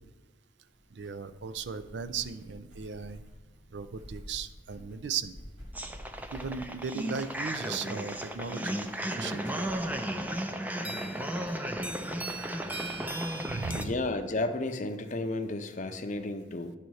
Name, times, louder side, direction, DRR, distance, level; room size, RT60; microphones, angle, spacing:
sound 1, 0.7-6.8, equal, 80° right, 2.9 m, -49 dB
voice 1, 0.9-3.2 3.7-5.3 6.3-8.9 9.2-9.7 13.4-14.0, right 6 dB, 65° right, 13 dB, 0.5 m, -37 dB
sound 2, 5.7-13.8, right 1 dB, 10° right, 0.4 m, -34 dB
voice 2, 13.7-16.7, left 2 dB, 40° left, 8 dB, 0.6 m, -32 dB
10.5 x 4.1 x 6.3 m, 1.3 s
head